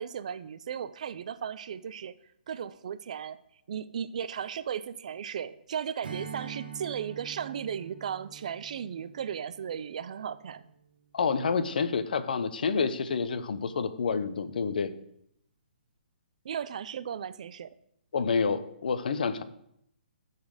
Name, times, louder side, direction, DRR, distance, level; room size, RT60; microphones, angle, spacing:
voice 1, 0.0-2.1 2.5-3.4 3.7-10.7 16.4-17.8, right 8 dB, 45° right, 14 dB, 0.4 m, -36 dB
Strum, 6.0-10.8, right 7 dB, 60° right, 1.1 m, -45 dB
voice 2, 11.1-14.9 18.1-19.4, left 5 dB, 60° left, 11 dB, 0.7 m, -28 dB
9.4 x 4.1 x 6.5 m, 0.74 s
hypercardioid pair, 175°, 5 cm